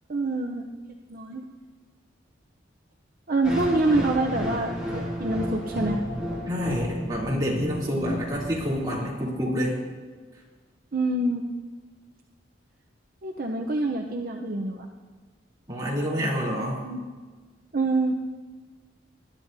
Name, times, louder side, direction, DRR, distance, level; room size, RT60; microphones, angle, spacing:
voice 1, 0.1-0.7 1.1-1.4 3.3-6.0 10.9-11.4 13.2-14.9 16.8-17.0 17.7-18.1, right 2 dB, 50° right, 2 dB, 0.7 m, -26 dB
sound 1, 3.4-9.5, equal, 5° right, 3.1 m, -32 dB
voice 2, 6.5-9.8 15.7-16.8, equal, 20° right, -6 dB, 3.0 m, -28 dB
20.0 x 11.0 x 2.7 m, 1.4 s
head